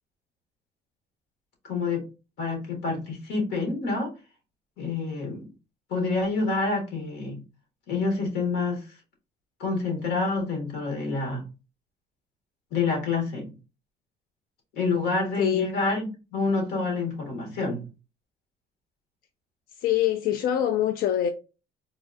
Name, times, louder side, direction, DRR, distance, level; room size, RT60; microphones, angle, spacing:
voice 1, 1.6-2.0 2.4-4.1 4.8-5.4 5.9-7.4 7.9-8.8 9.6-11.4 12.7-13.5 14.7-17.8, left 3 dB, 90° left, 1.5 m, -27 dB
voice 2, 15.4-15.7 19.8-21.3, left 11 dB, 60° left, 0.4 m, -24 dB
3.9 x 2.3 x 2.5 m
cardioid pair, 110°, 17 cm